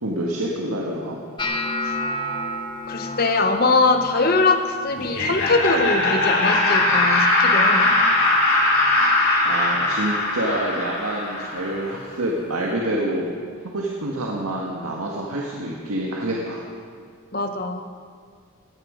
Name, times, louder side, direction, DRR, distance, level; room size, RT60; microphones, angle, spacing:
voice 1, 0.0-1.2 9.4-13.3 13.6-16.6, right 1 dB, 85° right, -2 dB, 1.7 m, -27 dB
sound 1, 1.4-7.5 7.7-8.3 8.6-9.2 9.8-10.0 11.7-11.8, left 1 dB, 20° left, 0.9 m, -33 dB
voice 2, 2.9-7.9 17.3-17.9, left 3 dB, 45° left, 7 dB, 1.1 m, -22 dB
Laughter, 5.0-11.8, left 2 dB, 80° left, 5.6 m, -20 dB
18.5 x 13.5 x 5.1 m, 2.1 s
head